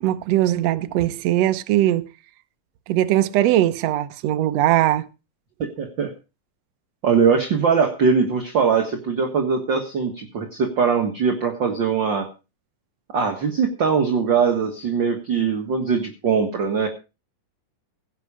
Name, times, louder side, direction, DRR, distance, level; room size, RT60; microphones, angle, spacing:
voice 1, 0.0-2.0 2.9-5.1, right 13 dB, 70° right, 1.7 m, -20 dB
voice 2, 5.6-6.1 7.0-12.3 13.1-16.9, right 6 dB, 45° right, 1.8 m, -21 dB
17.0 x 8.6 x 4.9 m
omnidirectional pair, 3.8 m